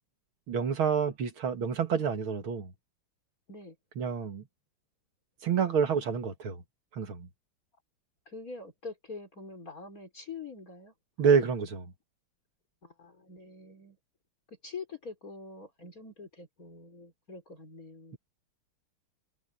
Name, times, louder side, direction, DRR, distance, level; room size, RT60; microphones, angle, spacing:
voice 1, 0.5-2.7 4.0-4.4 5.4-6.6 6.9-7.3 11.2-11.9, right 6 dB, 70° right, 2.8 m, -28 dB
voice 2, 8.3-10.9 12.8-14.0 14.5-18.2, left 4 dB, 40° left, 4.2 m, -45 dB
omnidirectional pair, 2.3 m